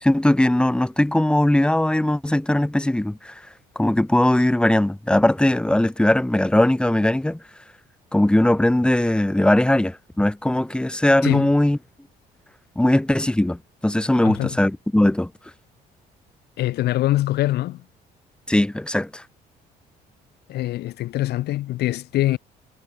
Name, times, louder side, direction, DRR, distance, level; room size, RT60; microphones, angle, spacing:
voice 1, 0.0-3.3 3.8-7.4 8.1-11.8 12.8-15.3 18.5-19.2, left 1 dB, 5° left, 2.1 m, -19 dB
voice 2, 14.2-14.6 16.6-17.8 20.5-22.4, left 15 dB, 75° left, 3.3 m, -23 dB
cardioid pair, 110°, 17 cm